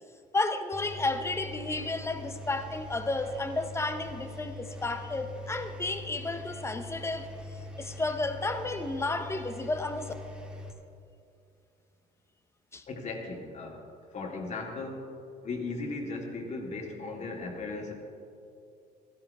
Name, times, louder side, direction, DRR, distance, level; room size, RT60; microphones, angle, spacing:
voice 1, 0.3-10.1 12.7-12.8, left 2 dB, 15° left, 0.9 m, -32 dB
Engine, 0.7-10.7, left 1 dB, 5° right, 1.9 m, -43 dB
voice 2, 12.9-13.8 14.1-15.1 15.4-17.9, left 3 dB, 45° left, 2.3 m, -37 dB
17.0 x 14.5 x 3.6 m
cardioid pair, 110°, 17 cm